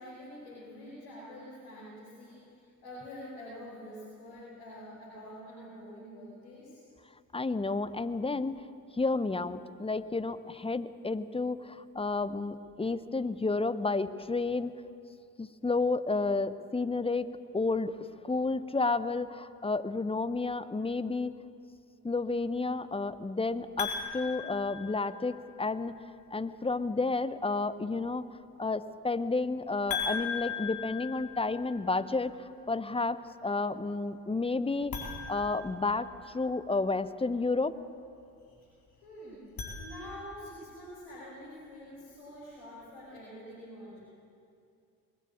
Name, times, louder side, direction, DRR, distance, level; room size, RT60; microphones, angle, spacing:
voice 1, 0.0-6.8 39.0-39.5 39.8-44.1, equal, 70° left, -7 dB, 5.6 m, -46 dB
voice 2, 7.3-8.6 9.0-14.7 15.4-17.3 17.5-18.0 18.2-21.3 22.0-25.9 26.3-28.2 28.6-35.0 35.3-36.1 36.3-37.7, left 3 dB, 10° left, 13 dB, 0.9 m, -31 dB
sound 1, 23.8-25.5 29.9-31.9 34.8-36.4 39.3-40.5, left 6 dB, 45° left, 4.6 m, -38 dB
21.0 x 15.0 x 8.6 m, 2.5 s
figure-of-eight pair, 45°, 47 cm